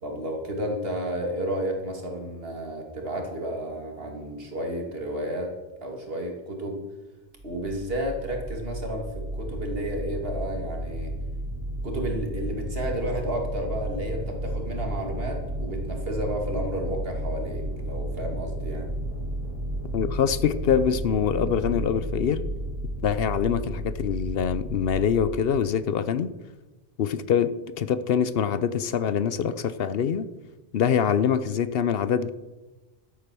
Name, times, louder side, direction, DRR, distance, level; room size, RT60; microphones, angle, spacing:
voice 1, 0.0-6.8 7.4-11.1 11.8-18.9, equal, 65° right, 2 dB, 2.4 m, -32 dB
sound 1, 7.4-25.3, right 1 dB, 85° right, 3.4 m, -33 dB
voice 2, 19.9-22.4 23.0-26.3 27.0-30.3 30.7-32.3, left 8 dB, 70° left, 14 dB, 0.8 m, -24 dB
12.0 x 8.4 x 6.1 m, 1.1 s
omnidirectional pair, 1.1 m